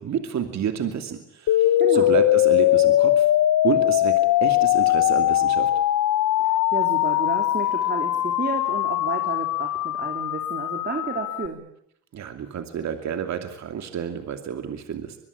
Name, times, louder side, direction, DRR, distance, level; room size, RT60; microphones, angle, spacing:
voice 1, 0.0-3.3 3.6-5.7 12.1-15.2, right 8 dB, 65° right, 7 dB, 2.7 m, -29 dB
sound 1, 1.5-11.5, left 14 dB, 80° left, 1.1 m, -21 dB
voice 2, 1.8-2.2 6.4-11.6, right 4 dB, 35° right, 4 dB, 3.5 m, -31 dB
23.0 x 23.0 x 8.6 m, 0.72 s
cardioid pair, 90°, 30 cm